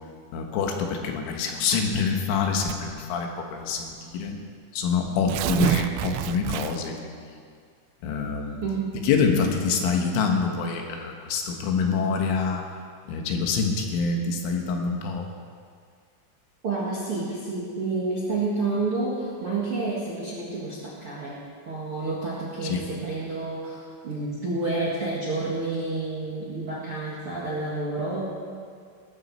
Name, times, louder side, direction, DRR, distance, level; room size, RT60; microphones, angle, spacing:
voice 1, 0.3-4.3 4.7-7.3 8.0-8.6 9.0-12.6 13.1-15.3 22.6-22.9, left 5 dB, 80° left, 3 dB, 3.8 m, -26 dB
Tearing, 2.6-3.0 3.9-4.0 4.3-4.4 5.1-7.0, right 13 dB, 85° right, 3.0 m, -29 dB
voice 2, 8.6-9.0 16.6-21.4 21.6-28.3, right 3 dB, 55° right, -7 dB, 1.5 m, -29 dB
18.5 x 13.5 x 4.4 m, 2.1 s
omnidirectional pair, 5.6 m